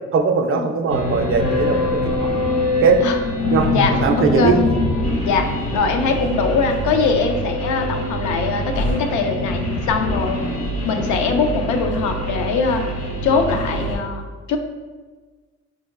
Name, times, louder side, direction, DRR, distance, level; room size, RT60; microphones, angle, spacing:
voice 1, 0.1-2.3 2.8-3.0 3.5-3.7 4.0-4.6, right 6 dB, 45° right, 5 dB, 0.4 m, -19 dB
sound 1, 0.9-14.0, left 1 dB, 55° left, 0.9 m, -23 dB
voice 2, 3.7-4.6 5.2-10.4 10.8-12.9 13.2-14.6, left 5 dB, 75° left, 5 dB, 0.5 m, -22 dB
3.7 x 2.7 x 2.4 m, 1.4 s
cardioid pair, 90°, 30 cm